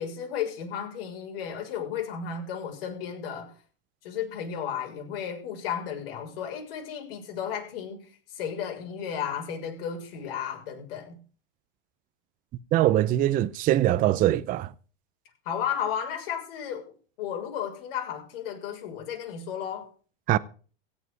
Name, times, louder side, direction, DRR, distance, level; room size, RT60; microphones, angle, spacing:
voice 1, 0.0-3.5 4.0-8.1 8.3-11.2 15.4-16.9 17.2-19.9, left 8 dB, 65° left, 6.5 m, -33 dB
voice 2, 12.7-14.7 20.3-20.4, right 13 dB, 30° right, 0.6 m, -22 dB
16.5 x 7.4 x 6.9 m
supercardioid pair, 140°, 30 cm